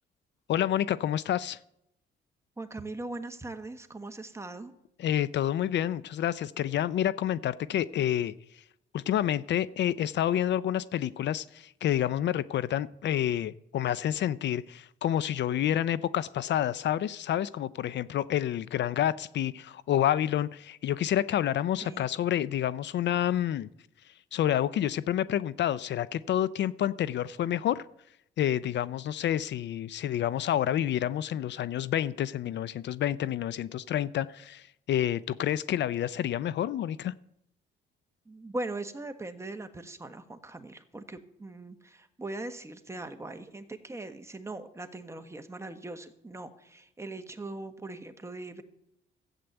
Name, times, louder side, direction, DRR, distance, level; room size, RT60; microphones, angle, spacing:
voice 1, 0.5-1.6 5.0-8.6 8.9-23.7 24.3-27.8 28.4-37.1, left 11 dB, 65° left, 0.5 m, -29 dB
voice 2, 2.6-4.7 21.8-22.1 38.3-48.6, right 2 dB, 15° right, 1.4 m, -40 dB
13.5 x 8.3 x 7.9 m
cardioid pair, 90°, 20 cm